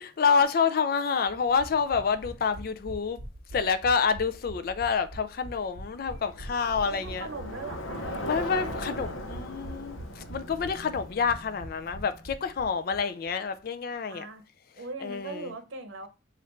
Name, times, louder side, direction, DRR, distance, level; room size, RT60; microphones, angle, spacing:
voice 1, 0.0-3.2 3.5-7.3 8.2-14.3 15.0-15.5, left 5 dB, 50° left, 0.4 m, -28 dB
sound 1, 1.3-13.0 13.3-13.4 13.6-13.7, right 1 dB, 35° right, 0.8 m, -43 dB
Bicycle, 5.9-12.4, left 1 dB, 85° left, 0.8 m, -39 dB
voice 2, 6.8-8.2 14.1-14.4 14.8-16.1, right 3 dB, 80° right, 0.7 m, -40 dB
3.2 x 2.5 x 4.3 m
head